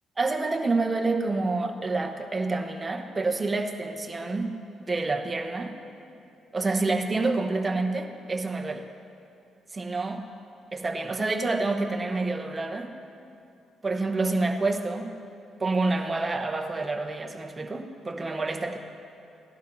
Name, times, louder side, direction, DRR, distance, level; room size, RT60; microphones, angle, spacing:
voice 1, 0.2-4.6 4.9-5.8 6.5-8.8 9.7-10.3 10.7-12.9 13.8-15.2 15.6-18.8, right 3 dB, 25° right, 3 dB, 1.0 m, -28 dB
17.5 x 11.5 x 2.7 m, 2.6 s
cardioid pair, 90°, 0 cm